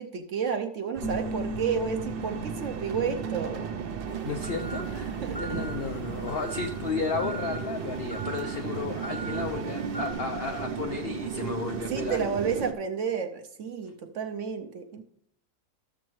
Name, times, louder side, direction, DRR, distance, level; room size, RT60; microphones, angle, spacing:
voice 1, 0.0-3.7 5.2-5.6 11.9-15.0, right 6 dB, 65° right, 7 dB, 0.8 m, -31 dB
sound 1, 1.0-6.4, left 1 dB, 55° left, 0.9 m, -40 dB
sound 2, 1.0-12.7, right 7 dB, 90° right, 0.5 m, -35 dB
sound 3, 4.1-10.1, right 3 dB, 20° left, 0.7 m, -42 dB
voice 2, 4.2-12.2, left 5 dB, 80° left, 5 dB, 0.5 m, -33 dB
13.0 x 7.2 x 3.1 m, 0.74 s
omnidirectional pair, 1.7 m